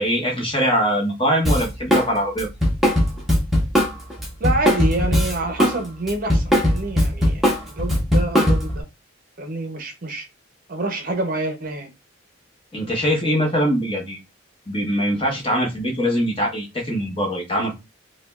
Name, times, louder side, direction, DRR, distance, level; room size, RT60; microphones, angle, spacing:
voice 1, 0.0-2.5 12.7-14.2 14.7-17.7, equal, 25° left, 1.1 m, -22 dB
Drum kit, 1.4-2.1 2.4-5.8 6.1-8.8, equal, ahead, 0.9 m, -19 dB
voice 2, 4.4-8.8 9.4-10.3 10.7-11.9, right 2 dB, 45° right, 0.7 m, -27 dB
4.8 x 2.2 x 2.3 m
head